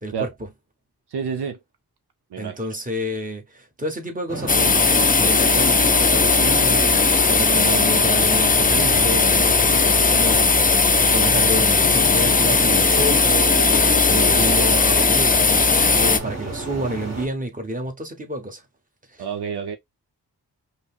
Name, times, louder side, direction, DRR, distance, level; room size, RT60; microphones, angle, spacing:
voice 1, 1.1-1.6 2.3-2.6 19.2-19.8, right 6 dB, 70° right, 0.7 m, -28 dB
voice 2, 2.4-18.6 19.1-19.2, right 1 dB, 20° right, 1.2 m, -29 dB
sound 1, 4.3-17.3, right 2 dB, 40° right, 1.5 m, -30 dB
sound 2, 4.5-16.2, left 4 dB, 20° left, 0.4 m, -17 dB
5.2 x 2.0 x 2.4 m
cardioid pair, 65°, 41 cm